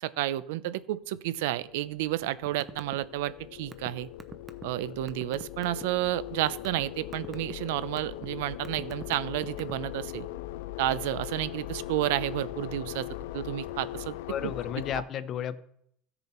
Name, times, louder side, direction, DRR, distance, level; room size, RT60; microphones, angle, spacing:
voice 1, 0.0-4.1 4.6-10.3 10.8-13.1 13.3-14.2, right 14 dB, 90° right, 17 dB, 0.5 m, -31 dB
sound 1, 1.4-15.0, left 14 dB, 80° left, 0.5 m, -40 dB
sound 2, 2.5-3.0 3.2-5.8 6.3-6.8 7.1-7.5 8.0-8.3 8.6-9.9, right 5 dB, 15° right, 0.5 m, -42 dB
voice 2, 14.3-15.6, left 9 dB, 30° left, 14 dB, 0.5 m, -33 dB
14.5 x 6.8 x 4.3 m, 0.69 s
cardioid pair, 180°, 0 cm